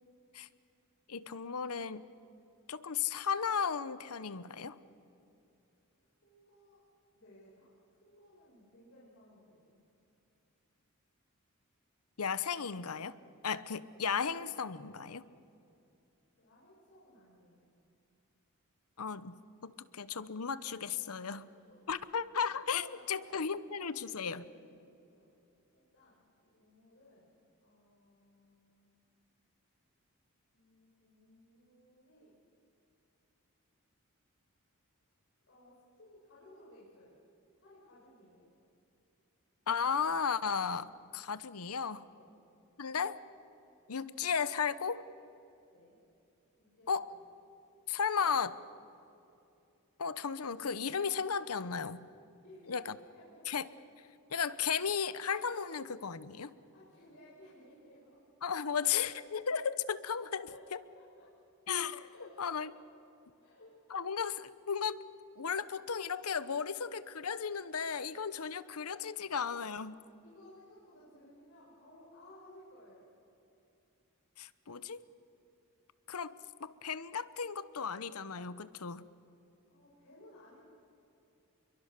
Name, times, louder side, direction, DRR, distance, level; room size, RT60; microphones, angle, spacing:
voice 1, 1.1-2.0 2.7-4.8 12.2-13.2 13.4-15.2 19.0-19.4 19.6-21.5 21.9-24.4 39.7-42.0 42.8-43.2 43.9-45.0 46.9-47.1 47.9-48.5 50.0-52.1 52.7-52.9 53.5-53.6 54.3-56.5 58.4-60.8 61.7-62.1 62.4-62.7 63.9-65.0 65.4-70.0 74.4-75.0 76.1-76.3 76.6-79.0, left 6 dB, 90° left, 16 dB, 0.9 m, -35 dB
voice 2, 6.2-6.8 7.1-9.8 16.4-17.7 21.2-21.8 22.9-23.7 24.1-25.2 25.7-27.3 27.6-28.9 30.5-32.3 35.5-37.2 37.6-38.5 42.1-42.3 45.7-46.0 46.6-47.3 48.1-48.5 52.4-53.7 56.5-58.2 60.2-60.6 61.0-61.3 62.1-62.6 63.4-63.7 70.2-73.1 79.7-80.7, left 1 dB, 60° left, -7 dB, 6.3 m, -59 dB
28.0 x 23.0 x 6.7 m, 2.8 s
head